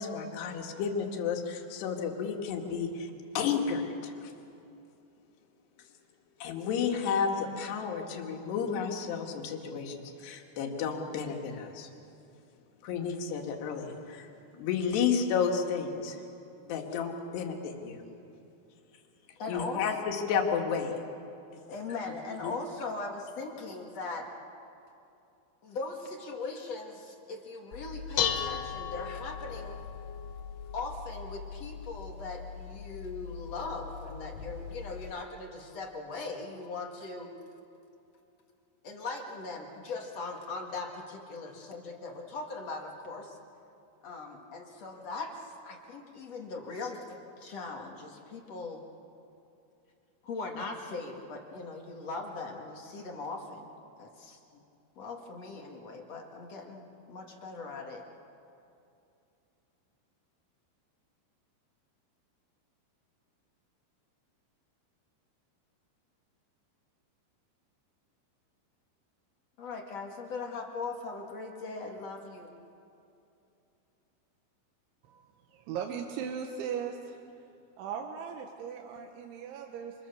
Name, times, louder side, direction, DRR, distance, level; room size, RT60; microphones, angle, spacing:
voice 1, 0.0-4.3 6.4-11.9 12.8-16.2 16.7-18.0 19.5-21.0 22.4-22.5, left 6 dB, 65° left, 2 dB, 3.9 m, -32 dB
voice 2, 19.4-19.8 21.7-24.3 25.6-29.8 30.7-37.3 38.8-43.4 44.0-48.8 50.2-53.7 54.0-54.6 55.0-58.0 69.6-72.5, left 3 dB, 45° left, 1 dB, 2.2 m, -40 dB
Dishes pots and pans, 27.7-35.1, left 8 dB, 85° left, 4.0 m, -37 dB
voice 3, 75.5-77.2 77.8-79.9, right 7 dB, 75° right, 2 dB, 3.6 m, -38 dB
28.0 x 27.5 x 7.0 m, 2.7 s
omnidirectional pair, 5.6 m